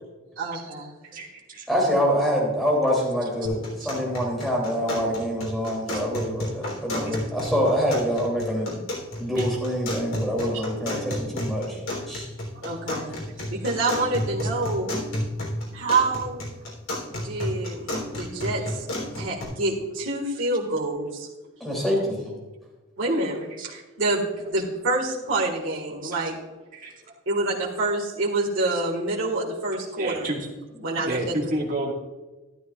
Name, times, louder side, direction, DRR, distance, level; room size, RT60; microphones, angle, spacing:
voice 1, 0.4-0.9 10.5-10.6 12.6-13.2 13.5-15.0 15.5-16.5 17.1-18.9 19.2-21.3 23.0-26.4 27.3-30.3 30.8-31.4, right 2 dB, 80° right, -4 dB, 1.8 m, -27 dB
voice 2, 1.1-1.7 3.8-3.9 7.0-7.2 9.4-9.5 23.6-23.8 26.0-26.2 26.7-26.9 30.0-30.5 31.0-31.9, right 1 dB, 45° right, -1 dB, 1.9 m, -31 dB
voice 3, 1.7-8.7 9.2-11.8 12.1-12.3 21.6-22.3, equal, ahead, -2 dB, 2.9 m, -25 dB
sound 1, 3.4-19.4, left 1 dB, 85° left, 3.5 m, -32 dB
12.5 x 12.0 x 2.4 m, 1.1 s
head